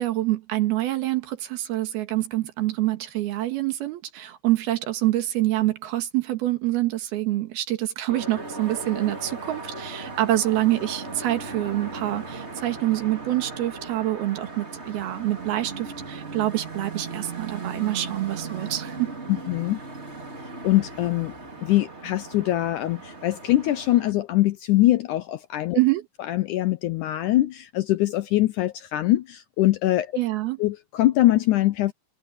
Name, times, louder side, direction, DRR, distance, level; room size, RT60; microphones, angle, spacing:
voice 1, 0.0-19.1 25.7-26.1 30.2-30.6, right 15 dB, 80° right, 3.5 m, -26 dB
sound 1, 8.1-24.1, right 3 dB, 20° right, 2.7 m, -37 dB
voice 2, 19.3-19.8 20.6-21.3 21.6-25.8 26.3-30.1 30.6-31.9, left 16 dB, 80° left, 1.8 m, -23 dB
omnidirectional pair, 4.4 m